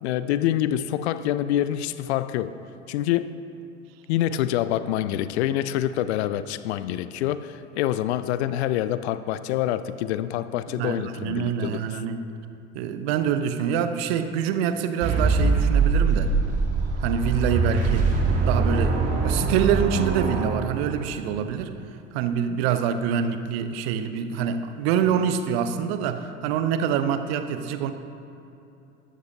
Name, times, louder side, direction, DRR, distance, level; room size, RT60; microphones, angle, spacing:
voice 1, 0.0-2.5 2.9-3.3 4.1-12.0, left 12 dB, 65° left, 14 dB, 0.5 m, -26 dB
voice 2, 10.7-12.2 12.7-16.3 17.0-18.1 18.4-21.7 22.1-27.9, right 8 dB, 55° right, 10 dB, 0.8 m, -26 dB
sound 1, 15.0-21.2, right 4 dB, 40° right, 1.9 m, -23 dB
13.0 x 12.5 x 2.7 m, 2.8 s
figure-of-eight pair, 70°, 36 cm